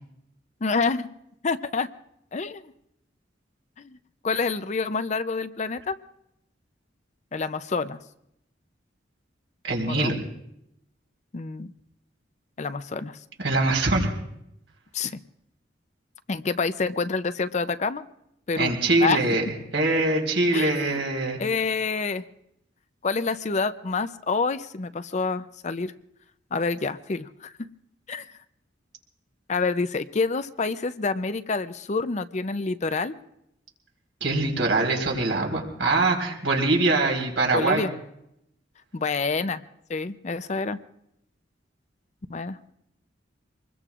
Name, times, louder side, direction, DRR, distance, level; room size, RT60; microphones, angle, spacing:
voice 1, 0.6-1.1 1.4-1.9 2.3-2.6 3.8-4.0 4.2-6.0 7.3-8.0 9.9-10.1 11.3-11.7 12.6-13.2 14.9-15.2 16.3-18.0 18.5-18.7 19.0-19.2 20.5-21.0 21.4-22.2 23.0-25.9 26.5-27.5 28.1-28.3 29.5-33.1 37.5-37.9 38.9-39.6 39.9-40.8 42.3-42.6, left 4 dB, 40° left, 12 dB, 0.5 m, -27 dB
voice 2, 9.6-10.1 13.4-14.1 18.6-19.4 19.7-21.4 34.2-37.9, right 2 dB, 75° right, 1 dB, 4.2 m, -23 dB
25.5 x 21.0 x 2.4 m, 0.79 s
head